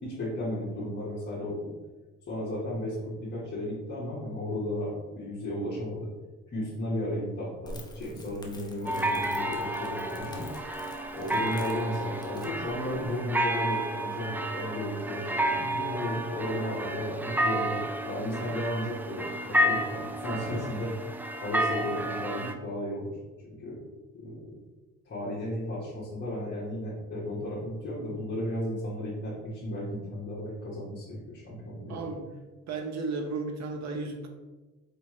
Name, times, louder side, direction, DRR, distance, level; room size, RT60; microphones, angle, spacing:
voice 1, 0.0-1.7 2.3-6.1 6.5-10.4 11.1-20.9 21.4-23.1 23.4-23.8 24.1-24.5 25.0-32.1, left 1 dB, 40° left, -9 dB, 1.4 m, -34 dB
Crackle, 7.7-13.1, left 1 dB, 15° left, 0.8 m, -48 dB
sound 1, 8.8-22.5, right 1 dB, 5° right, 0.3 m, -31 dB
voice 2, 31.9-32.3 32.7-34.3, right 3 dB, 60° right, 3 dB, 0.9 m, -34 dB
4.5 x 3.3 x 3.1 m, 1.2 s
cardioid pair, 90°, 30 cm